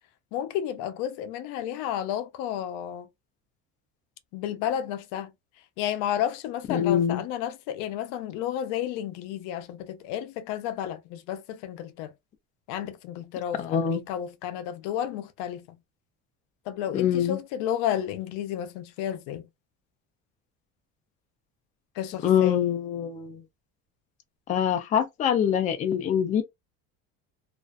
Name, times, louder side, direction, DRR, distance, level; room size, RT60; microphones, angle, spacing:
voice 1, 0.3-3.1 4.3-5.3 5.8-12.1 12.7-15.7 16.7-19.5 22.0-22.6, left 10 dB, 75° left, 0.5 m, -32 dB
voice 2, 6.7-7.2 13.6-14.0 16.9-17.4 22.2-23.4 24.5-26.4, left 9 dB, 25° left, 0.4 m, -24 dB
2.5 x 2.2 x 2.2 m
cardioid pair, 155°, 31 cm